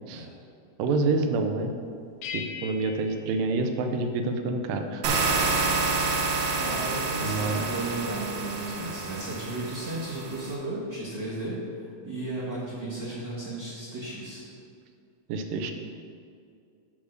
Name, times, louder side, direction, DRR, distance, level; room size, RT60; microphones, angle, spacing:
voice 1, 0.8-1.7 2.3-5.6 7.2-7.7 15.3-15.7, right 3 dB, 90° right, 6 dB, 2.4 m, -28 dB
sound 1, 2.2-4.4, left 7 dB, 80° left, 2.3 m, -41 dB
sound 2, 5.0-10.5, right 4 dB, 70° right, 1.8 m, -28 dB
voice 2, 6.5-14.4, right 2 dB, 50° right, -8 dB, 1.4 m, -34 dB
10.0 x 3.7 x 6.4 m, 2.3 s
omnidirectional pair, 3.9 m